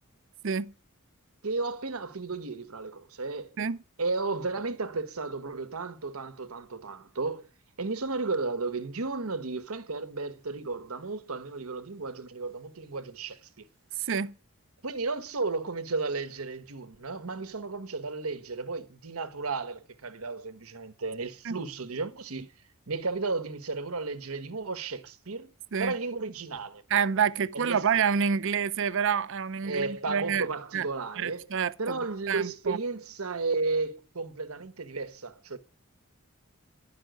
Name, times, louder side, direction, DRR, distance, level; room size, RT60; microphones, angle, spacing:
voice 1, 1.4-3.6 4.0-7.5 7.8-13.6 14.8-22.5 22.9-25.5 25.8-26.8 27.5-27.8 29.6-31.5 31.8-35.6, right 3 dB, 85° right, 1.2 m, -33 dB
voice 2, 14.0-14.3 21.4-21.6 25.7-25.9 26.9-30.5 30.7-30.9 31.2-32.0 32.3-32.8, right 7 dB, 60° right, 0.5 m, -28 dB
11.5 x 5.9 x 9.1 m
head